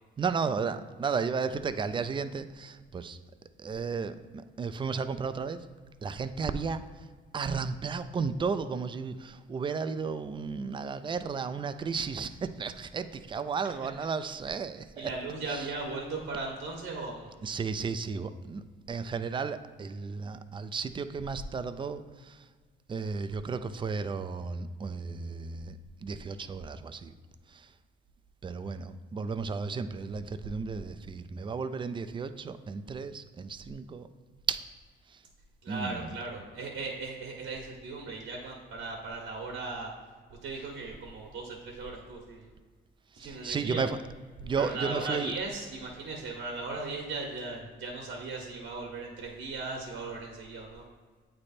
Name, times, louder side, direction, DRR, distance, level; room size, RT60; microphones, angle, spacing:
voice 1, 0.2-3.2 3.6-5.7 6.0-6.8 7.3-15.1 15.5-15.7 17.4-22.5 22.9-27.1 27.5-27.7 28.4-34.1 34.5-34.6 35.1-35.2 35.7-36.0 43.2-44.0 44.4-45.3, right 5 dB, 25° right, 11 dB, 0.4 m, -34 dB
voice 2, 15.0-17.3 35.6-39.9 40.4-42.5 43.1-43.8 44.6-50.8, right 3 dB, 70° right, -1 dB, 1.2 m, -37 dB
8.6 x 3.3 x 4.2 m, 1.5 s
cardioid pair, 90°, 20 cm